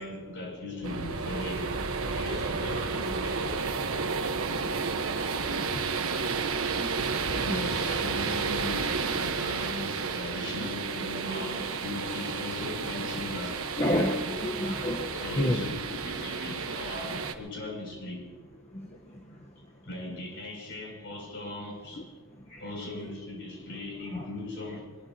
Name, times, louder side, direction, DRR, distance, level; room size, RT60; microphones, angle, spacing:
voice 1, 0.0-3.8 4.6-4.8 7.1-13.7 14.5-18.5 19.2-19.5 19.8-22.1 22.6-25.0, left 2 dB, 60° left, 6.6 m, -39 dB
sound 1, 0.8-17.3, right 4 dB, 80° right, 1.2 m, -31 dB
voice 2, 4.9-7.6 10.6-10.7 11.4-11.5 13.8-15.6 18.7-19.2 22.5-22.6 24.1-24.3, left 1 dB, 30° left, 1.0 m, -32 dB
22.5 x 21.0 x 2.9 m
head